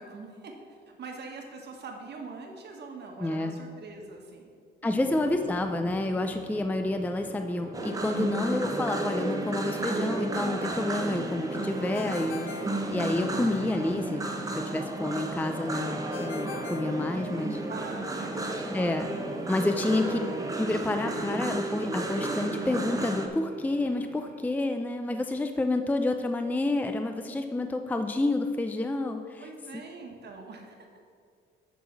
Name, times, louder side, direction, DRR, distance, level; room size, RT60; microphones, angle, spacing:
voice 1, 0.0-4.5 4.8-4.9 16.9-18.4 29.4-30.9, right 4 dB, 60° right, 2 dB, 1.4 m, -43 dB
voice 2, 3.2-3.6 4.8-14.2 14.5-17.6 18.7-19.1 19.5-20.2 20.6-29.5 29.7-29.8, left 2 dB, 10° left, 7 dB, 0.4 m, -29 dB
sound 1, 4.9-24.4, right 3 dB, 40° right, 1.1 m, -47 dB
sound 2, 7.7-23.3, right 2 dB, 15° right, 0.9 m, -33 dB
Ringtone, 11.9-13.6 16.1-17.8, left 8 dB, 85° left, 0.5 m, -44 dB
9.4 x 3.8 x 6.0 m, 2.3 s
cardioid pair, 90°, 20 cm